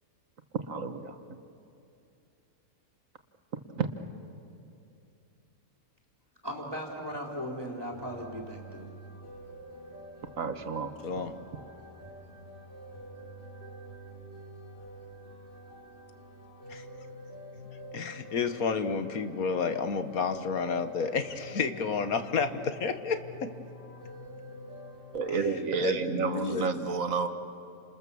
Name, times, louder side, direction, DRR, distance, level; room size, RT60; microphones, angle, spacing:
voice 1, 0.7-1.2 3.8-3.9 10.4-10.9 25.1-27.3, right 5 dB, 65° right, 8 dB, 1.7 m, -30 dB
voice 2, 6.4-8.9 11.1-11.3, equal, 15° right, -1 dB, 4.0 m, -38 dB
sound 1, 7.9-25.5, equal, 45° left, 4.4 m, -48 dB
voice 3, 17.9-23.5 25.8-26.7, left 5 dB, 75° left, 9 dB, 1.8 m, -30 dB
30.0 x 27.0 x 7.1 m, 2.7 s
omnidirectional pair, 1.5 m